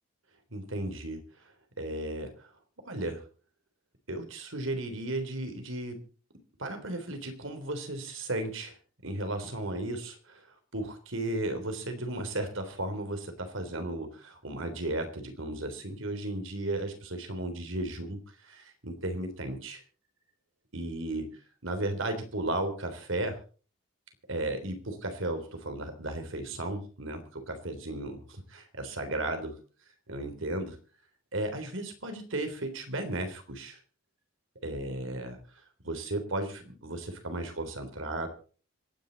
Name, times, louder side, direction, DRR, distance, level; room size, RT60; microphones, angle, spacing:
voice 1, 0.5-1.2 1.8-2.5 2.9-3.2 4.1-6.0 6.6-8.7 9.0-10.5 10.7-19.8 20.7-21.3 21.6-23.4 24.3-29.6 30.1-30.8 31.3-33.8 34.6-35.4 35.8-38.3, right 1 dB, 70° right, 7 dB, 3.6 m, -35 dB
26.0 x 10.0 x 4.1 m, 0.39 s
head